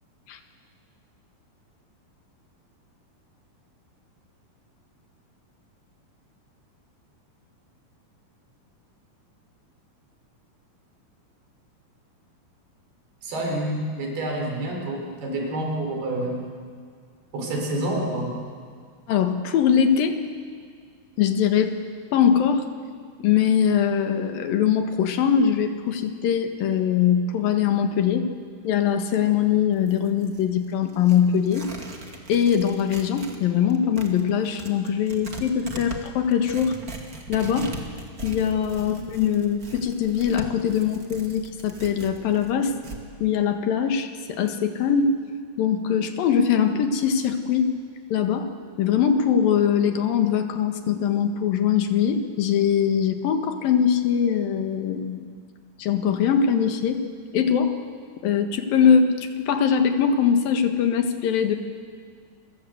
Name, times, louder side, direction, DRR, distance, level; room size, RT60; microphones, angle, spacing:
voice 1, 13.2-16.3 17.3-18.3 38.8-38.9, right 1 dB, 80° right, 0 dB, 6.7 m, -28 dB
voice 2, 19.1-20.2 21.2-21.7 22.1-22.7 23.2-28.3 28.6-31.7 32.3-36.8 37.3-37.7 38.2-42.7 43.2-45.2 45.6-47.7 48.1-55.3 55.8-57.0 57.3-57.8 58.2-61.6, left 8 dB, 70° left, 7 dB, 3.3 m, -22 dB
Tearing, 29.7-33.4 33.7-43.0, right 2 dB, 30° right, 2.2 m, -40 dB
29.5 x 23.5 x 8.1 m, 2.1 s
omnidirectional pair, 4.4 m